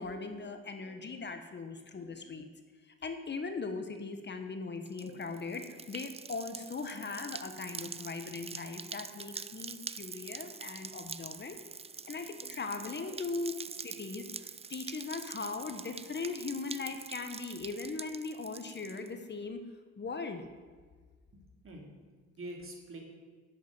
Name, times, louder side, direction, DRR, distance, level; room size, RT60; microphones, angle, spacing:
voice 1, 0.0-2.5 2.8-11.6 12.1-19.6 20.0-20.4, left 4 dB, 35° left, 7 dB, 1.2 m, -39 dB
sound 1, 4.9-19.1, right 5 dB, 20° right, 0.4 m, -45 dB
voice 2, 21.3-23.0, right 1 dB, 45° right, 1 dB, 3.1 m, -46 dB
11.5 x 7.9 x 7.7 m, 1.5 s
cardioid pair, 90°, 30 cm